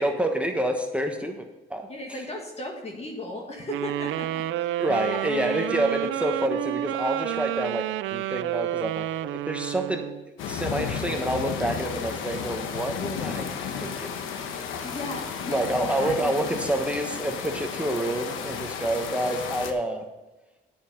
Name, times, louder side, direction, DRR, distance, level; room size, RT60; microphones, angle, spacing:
voice 1, 0.0-2.2 4.8-10.1 10.5-13.5 13.8-14.8 15.5-20.1, right 1 dB, 5° right, 4 dB, 1.2 m, -28 dB
voice 2, 1.9-4.8 5.1-5.2 14.8-16.4, left 1 dB, 30° left, 1 dB, 1.8 m, -36 dB
sound 1, 3.7-10.2, right 14 dB, 80° right, 0.4 m, -30 dB
sound 2, 10.4-19.7, left 7 dB, 85° left, 1.1 m, -33 dB
9.6 x 6.9 x 5.3 m, 1.1 s
cardioid pair, 90°, 20 cm